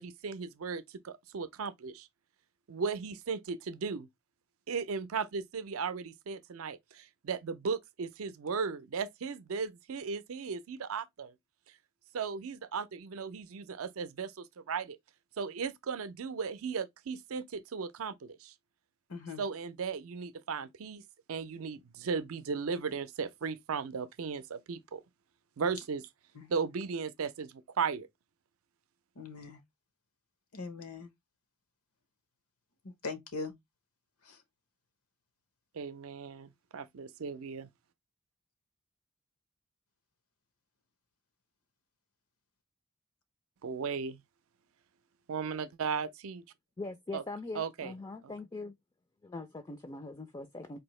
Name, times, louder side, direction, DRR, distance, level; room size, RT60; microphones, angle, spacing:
voice 1, 0.0-2.1 2.7-4.1 4.7-11.3 12.1-15.0 15.4-18.5 19.4-21.0 21.3-25.0 25.6-26.1 26.5-28.1 35.7-37.7 43.6-44.2 45.3-46.4 47.1-47.2 47.6-47.9, right 5 dB, 70° right, 0.5 m, -36 dB
voice 2, 19.1-19.4 26.4-26.5 29.2-29.6 30.5-31.1 33.0-33.5 34.3-34.4, left 4 dB, 90° left, 1.0 m, -40 dB
voice 3, 46.8-48.7 49.2-50.8, left 3 dB, 20° left, 0.3 m, -42 dB
4.4 x 2.7 x 3.1 m
head